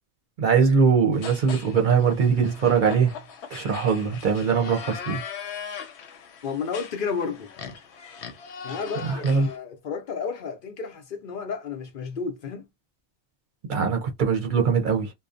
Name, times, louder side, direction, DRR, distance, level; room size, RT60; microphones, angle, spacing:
voice 1, 0.4-3.1 3.5-5.2 9.0-9.5 13.7-15.1, right 6 dB, 55° right, 0.7 m, -21 dB
sound 1, 1.1-9.6, left 7 dB, 90° left, 0.9 m, -40 dB
voice 2, 6.4-7.5 8.6-12.7, left 5 dB, 60° left, 0.7 m, -32 dB
2.6 x 2.0 x 2.4 m
omnidirectional pair, 1.1 m